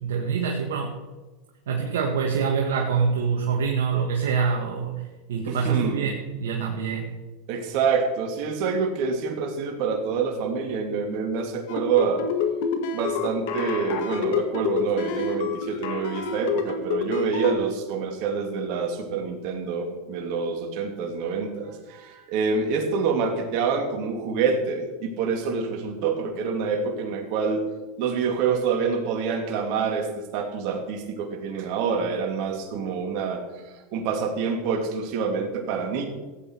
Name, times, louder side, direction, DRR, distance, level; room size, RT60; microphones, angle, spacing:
voice 1, 0.0-1.0 1.7-7.1, right 6 dB, 85° right, 0 dB, 1.7 m, -25 dB
voice 2, 5.5-6.0 7.5-12.2 12.9-27.6 28.0-33.4 33.9-36.1, right 5 dB, 60° right, 3 dB, 2.6 m, -27 dB
sound 1, 11.7-17.5, left 6 dB, 70° left, 1.7 m, -28 dB
15.5 x 8.9 x 4.7 m, 1.2 s
supercardioid pair, 110°, 0 cm